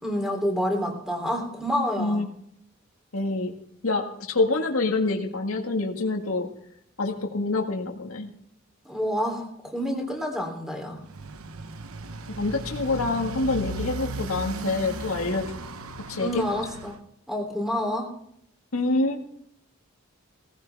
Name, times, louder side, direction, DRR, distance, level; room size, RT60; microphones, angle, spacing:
voice 1, 0.0-2.2 8.8-11.0 16.2-16.9 17.3-18.1, equal, ahead, 3 dB, 3.3 m, -28 dB
voice 2, 3.1-3.5 3.8-6.5 7.0-8.3 12.4-15.5 16.1-16.5 18.7-19.2, left 3 dB, 85° left, 2 dB, 1.9 m, -26 dB
Motorcycle, 11.0-17.0, right 2 dB, 85° right, 1.0 m, -36 dB
18.0 x 15.0 x 3.5 m, 0.69 s
head